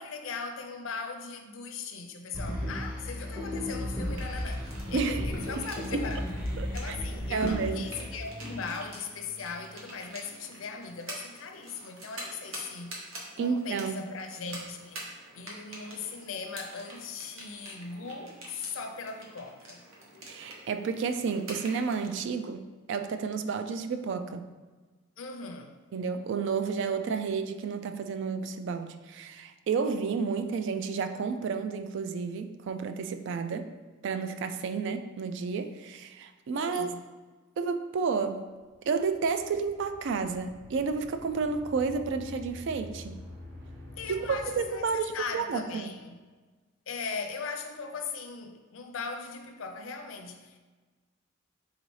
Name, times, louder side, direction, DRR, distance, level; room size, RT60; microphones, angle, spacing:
voice 1, 0.0-6.2 6.7-13.0 13.4-15.0 15.3-19.8 25.2-25.8 36.7-37.1 44.0-46.2 46.9-50.6, left 5 dB, 75° left, 5 dB, 0.5 m, -39 dB
sound 1, 2.3-9.3 9.8-9.9, equal, 10° right, 0.7 m, -35 dB
sound 2, 4.0-22.1, right 1 dB, 80° right, 0.9 m, -46 dB
voice 2, 4.9-5.2 5.6-5.7 5.9-6.1 6.6-7.0 7.3-7.9 13.4-14.2 20.2-24.5 25.9-33.7 34.0-36.9 37.6-38.5 38.9-43.2 44.1-45.9, right 5 dB, 60° right, 8 dB, 0.3 m, -31 dB
sound 3, 38.7-45.7, left 1 dB, 45° right, 1.4 m, -48 dB
4.0 x 3.7 x 3.1 m, 1.3 s
head